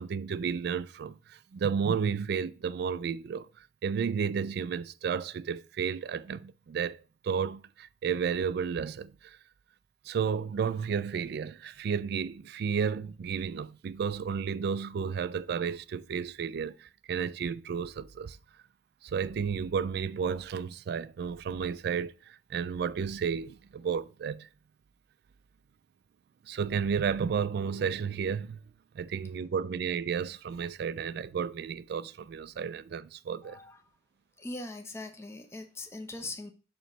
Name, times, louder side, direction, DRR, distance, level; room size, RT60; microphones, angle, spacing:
voice 1, 0.0-3.5 3.8-9.4 10.1-18.4 19.0-24.5 26.5-28.6 28.9-33.6, right 6 dB, 60° right, 0.3 m, -32 dB
voice 2, 33.4-33.8 34.4-36.5, left 2 dB, 15° left, 0.7 m, -41 dB
6.9 x 3.1 x 5.9 m
head